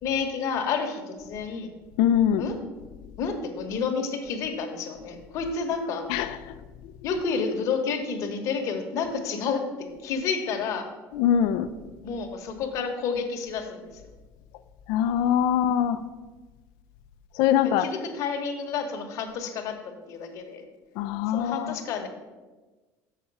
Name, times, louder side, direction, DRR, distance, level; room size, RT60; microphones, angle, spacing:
voice 1, 0.0-1.7 2.4-2.6 3.2-6.1 7.0-9.6 10.0-10.9 12.0-13.9 17.6-20.6 21.3-22.1, left 5 dB, 50° left, 4 dB, 1.1 m, -30 dB
voice 2, 2.0-2.4 6.1-6.4 11.1-11.7 14.9-16.0 17.4-17.9 21.0-21.8, left 9 dB, 70° left, 9 dB, 0.5 m, -22 dB
7.2 x 5.8 x 5.3 m, 1.2 s
cardioid pair, 145°, 7 cm